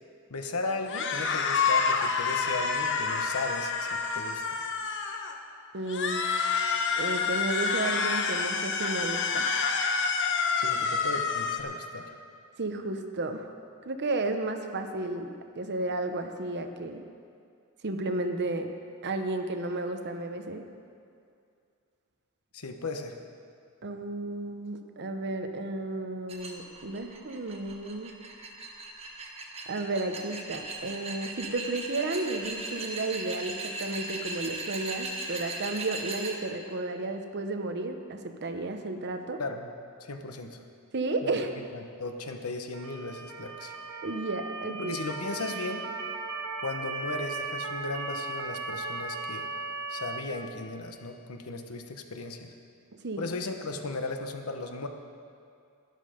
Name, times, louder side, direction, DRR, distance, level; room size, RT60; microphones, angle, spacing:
voice 1, 0.3-4.4 10.6-12.1 22.5-23.2 39.4-39.7 40.0-40.6 41.2-41.3 41.7-43.7 44.8-45.8 46.6-49.5 49.9-52.5 53.2-54.9, left 3 dB, 85° left, 5 dB, 1.0 m, -36 dB
sound 1, 0.9-5.4 5.9-11.6, left 5 dB, 55° left, 0.9 m, -28 dB
voice 2, 5.7-6.3 7.0-9.5 12.6-13.5 13.8-17.0 17.8-18.7 19.0-20.6 23.8-28.1 29.7-39.4 40.9-41.5 44.0-45.0 53.0-53.2, right 2 dB, 50° right, 6 dB, 0.9 m, -33 dB
sound 2, 26.3-36.3, right 3 dB, 30° right, 1.2 m, -38 dB
Motor vehicle (road) / Siren, 42.7-50.2, right 3 dB, 75° right, 1.0 m, -37 dB
12.0 x 12.0 x 5.1 m, 2.4 s
head